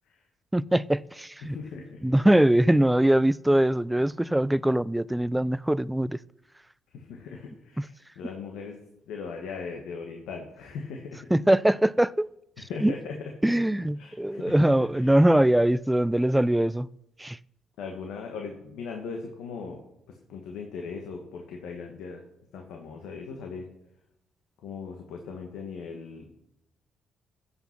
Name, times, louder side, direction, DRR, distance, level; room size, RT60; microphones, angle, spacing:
voice 1, 0.5-1.6 2.0-6.2 7.8-7.9 11.3-12.3 12.8-12.9 13.4-16.9 17.2-17.4, right 1 dB, 5° right, 0.3 m, -22 dB
voice 2, 1.4-2.2 6.9-11.3 12.6-13.3 14.0-14.5 14.9-15.1 17.8-22.2 22.5-23.7 24.6-26.3, left 5 dB, 85° left, 1.3 m, -39 dB
15.0 x 5.7 x 5.8 m
cardioid pair, 90°, 0 cm